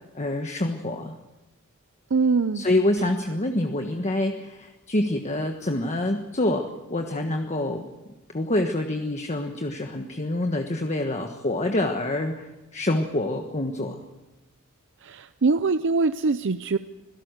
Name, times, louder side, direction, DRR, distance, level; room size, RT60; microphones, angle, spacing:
voice 1, 0.1-1.1 2.5-7.8 8.3-14.0, left 1 dB, 35° left, 4 dB, 1.3 m, -26 dB
voice 2, 2.1-2.6 15.0-16.8, right 4 dB, 60° right, 11 dB, 0.6 m, -23 dB
26.0 x 17.5 x 6.5 m, 1.1 s
head